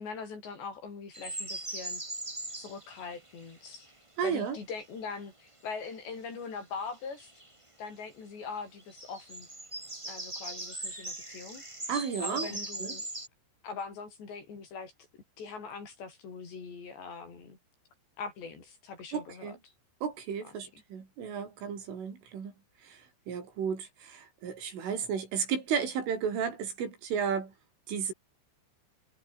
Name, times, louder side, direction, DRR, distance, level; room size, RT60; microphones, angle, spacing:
voice 1, 0.0-2.0 2.6-3.9 4.2-7.3 7.8-9.5 10.0-11.6 12.2-13.1 13.6-14.9 15.4-17.6 18.2-19.7 20.4-20.8, left 5 dB, 65° left, 8.5 m, -42 dB
sound 1, 1.1-3.9 6.8-7.5 8.8-13.3, right 1 dB, 10° right, 1.3 m, -40 dB
voice 2, 4.2-4.6 11.9-12.5 12.8-12.9 19.1-19.6 20.0-22.5 22.8-27.5 27.9-28.1, right 7 dB, 85° right, 7.7 m, -33 dB
omnidirectional pair, 5.5 m